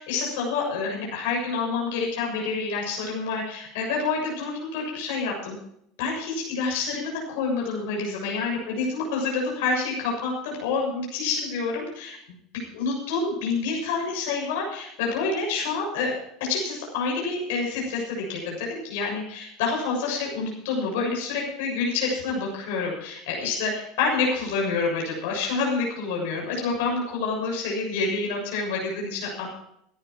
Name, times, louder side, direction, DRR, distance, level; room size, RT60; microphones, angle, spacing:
voice 1, 0.0-5.5 6.0-12.2 12.7-16.1 16.5-29.6, left 4 dB, 75° left, -1 dB, 6.8 m, -28 dB
18.0 x 10.5 x 4.6 m, 0.72 s
hypercardioid pair, 90°, 0 cm